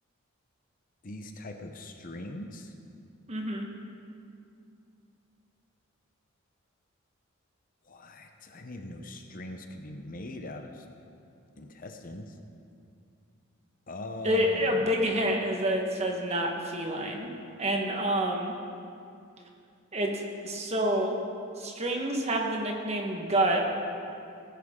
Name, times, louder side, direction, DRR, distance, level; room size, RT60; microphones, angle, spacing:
voice 1, 1.0-2.7 7.8-10.9 11.6-12.4 13.9-14.9, left 1 dB, 40° left, 5 dB, 0.8 m, -41 dB
voice 2, 3.3-3.7 14.2-17.3 17.6-18.5 19.9-21.2 21.6-23.7, right 1 dB, 30° right, 1 dB, 1.4 m, -28 dB
19.0 x 10.5 x 3.8 m, 2.5 s
head